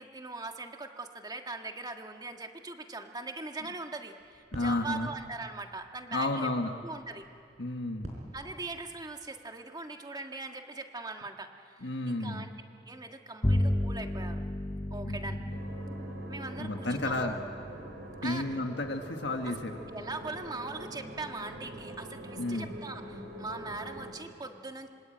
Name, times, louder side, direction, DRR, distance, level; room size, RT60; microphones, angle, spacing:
voice 1, 0.0-6.5 6.8-7.3 8.3-12.5 12.9-14.4 14.9-15.4 16.3-17.3 18.2-18.5 19.5-19.6 19.9-24.9, right 3 dB, 20° right, 4 dB, 1.7 m, -41 dB
sound 1, 4.2-9.2, equal, 40° right, 5.2 m, -50 dB
voice 2, 4.5-5.1 6.1-6.7 7.6-8.2 11.8-12.5 15.0-15.5 16.6-17.3 18.2-19.8 22.4-22.7, left 2 dB, 70° left, 4 dB, 1.6 m, -32 dB
Bowed string instrument, 13.4-19.1, left 1 dB, 20° left, 0.7 m, -34 dB
sound 2, 15.5-24.1, right 1 dB, 65° right, 5.7 m, -44 dB
26.0 x 25.5 x 9.0 m, 2.5 s
head